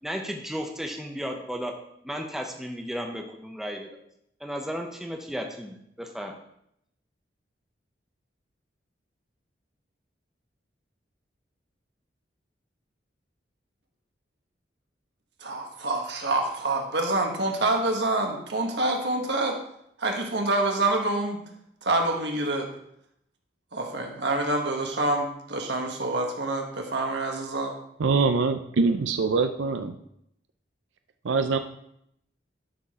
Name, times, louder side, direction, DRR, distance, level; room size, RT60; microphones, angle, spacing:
voice 1, 0.0-3.9 4.4-6.4, equal, ahead, 1 dB, 0.8 m, -34 dB
voice 2, 15.4-19.6 20.0-21.4 21.8-22.7 23.7-27.8, right 2 dB, 70° right, 2 dB, 1.4 m, -27 dB
voice 3, 28.0-30.0 31.2-31.6, right 4 dB, 90° right, 8 dB, 0.5 m, -23 dB
11.0 x 6.2 x 3.7 m, 0.75 s
head